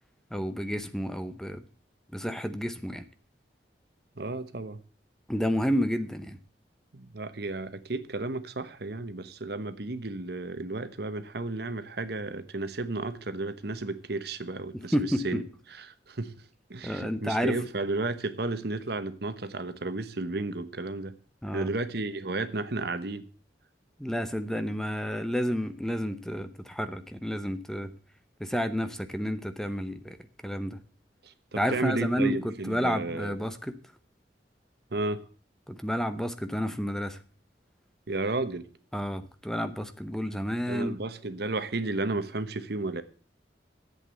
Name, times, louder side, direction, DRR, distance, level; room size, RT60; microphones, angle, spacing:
voice 1, 0.3-1.6 2.1-3.0 5.3-6.4 14.9-15.2 16.8-17.6 21.4-21.7 24.0-27.9 28.4-30.2 30.4-30.8 31.6-33.6 35.7-37.2 38.9-41.0, equal, 5° left, 0.8 m, -30 dB
voice 2, 4.2-4.8 6.9-16.3 16.7-21.1 21.5-23.3 31.2-33.4 34.9-35.2 38.1-38.7 40.7-43.0, right 2 dB, 65° right, 1.1 m, -33 dB
11.0 x 8.2 x 8.1 m
head